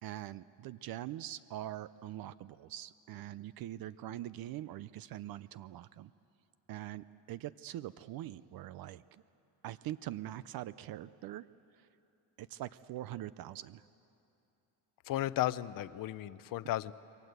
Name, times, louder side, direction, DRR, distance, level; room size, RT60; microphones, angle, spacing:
voice 1, 0.0-6.1 6.7-9.0 9.6-11.4 11.8-11.9 12.4-13.8, right 13 dB, 60° right, 16 dB, 0.5 m, -43 dB
voice 2, 15.1-16.9, left 14 dB, 55° left, 16 dB, 0.6 m, -34 dB
28.0 x 23.0 x 8.1 m, 2.8 s
cardioid pair, 175°, 40 cm